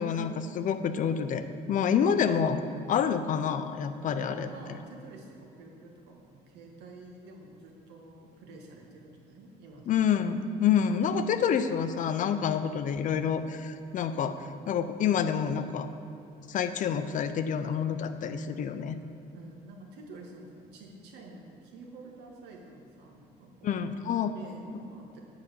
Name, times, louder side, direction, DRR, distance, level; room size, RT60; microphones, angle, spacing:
voice 1, 0.0-2.6 2.9-4.5 9.9-15.9 16.5-19.0 23.6-24.4, left 7 dB, 50° left, 9 dB, 0.5 m, -28 dB
voice 2, 4.0-10.0 19.3-23.8 24.3-25.2, right 2 dB, 85° right, 0 dB, 1.3 m, -49 dB
7.7 x 4.1 x 6.7 m, 2.7 s
cardioid pair, 110°, 17 cm